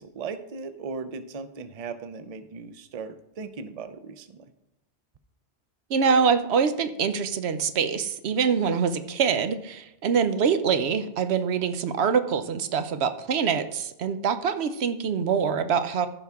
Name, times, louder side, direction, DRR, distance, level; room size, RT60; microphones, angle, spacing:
voice 1, 0.0-4.5, right 5 dB, 45° right, 11 dB, 0.6 m, -37 dB
voice 2, 5.9-16.1, right 6 dB, 85° right, 11 dB, 0.9 m, -24 dB
15.0 x 5.5 x 3.6 m, 0.86 s
omnidirectional pair, 1.1 m